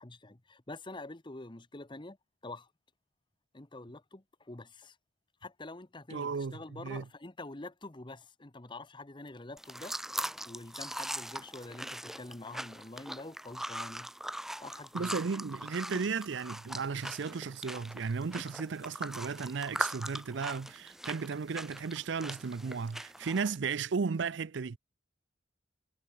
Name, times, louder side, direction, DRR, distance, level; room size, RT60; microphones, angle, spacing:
voice 1, 0.0-2.2 2.4-2.7 3.5-5.0 5.4-10.0 10.5-14.1 14.6-15.2 15.9-16.0 16.9-17.0, left 2 dB, 25° left, 1.0 m, -46 dB
voice 2, 6.1-7.0 14.9-24.8, right 5 dB, 65° right, 0.5 m, -35 dB
sound 1, 9.6-23.6, equal, ahead, 1.0 m, -41 dB
head